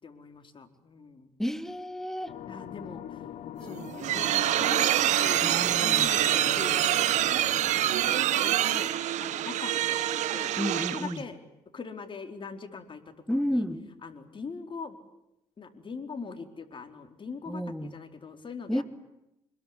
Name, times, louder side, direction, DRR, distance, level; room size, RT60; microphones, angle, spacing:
voice 1, 0.0-1.3 2.5-3.2 3.6-7.7 8.0-8.9 9.2-11.4 11.7-13.6 14.0-15.0 15.6-18.8, left 4 dB, 45° left, 4.5 m, -42 dB
voice 2, 1.4-2.4 5.4-6.1 10.6-11.2 13.3-13.9 17.5-17.9 18.7-18.8, equal, 5° left, 2.5 m, -31 dB
sound 1, 2.3-8.1, left 10 dB, 75° left, 1.5 m, -43 dB
sound 2, 3.6-11.2, right 12 dB, 80° right, 1.7 m, -26 dB
26.0 x 22.0 x 10.0 m
cardioid pair, 70°, 12 cm